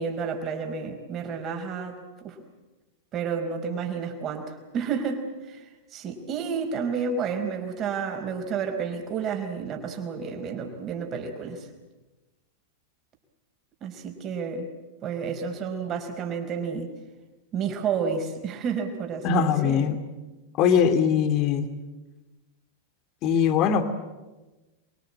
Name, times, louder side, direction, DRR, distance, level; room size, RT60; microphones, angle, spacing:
voice 1, 0.0-1.9 2.2-2.4 3.1-11.7 13.8-14.7 15.0-16.9 17.5-19.9, right 6 dB, 35° right, 5 dB, 4.8 m, -31 dB
voice 2, 19.2-20.0 20.6-21.7 23.2-23.9, left 7 dB, 40° left, 9 dB, 2.6 m, -21 dB
28.0 x 23.0 x 8.8 m, 1.1 s
figure-of-eight pair, 90°, 0 cm